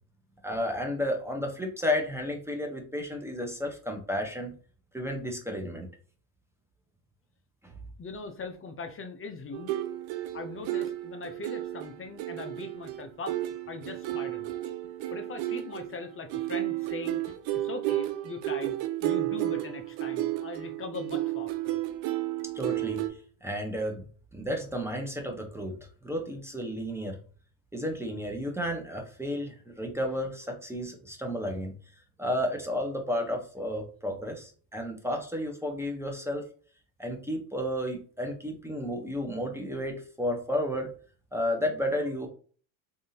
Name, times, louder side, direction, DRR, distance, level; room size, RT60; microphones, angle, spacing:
voice 1, 0.4-4.5 4.9-5.9 7.6-7.8 22.5-24.0 24.3-27.2 27.7-31.7 32.2-36.4 37.0-40.9 41.3-42.3, equal, 5° right, 2 dB, 0.8 m, -32 dB
voice 2, 8.0-9.7 10.3-13.4 13.7-14.5 15.1-21.8, left 4 dB, 30° left, 6 dB, 0.5 m, -41 dB
sound 1, 9.5-23.1, right 14 dB, 75° right, 0.6 m, -32 dB
3.4 x 2.6 x 2.8 m, 0.42 s
supercardioid pair, 95°, 47 cm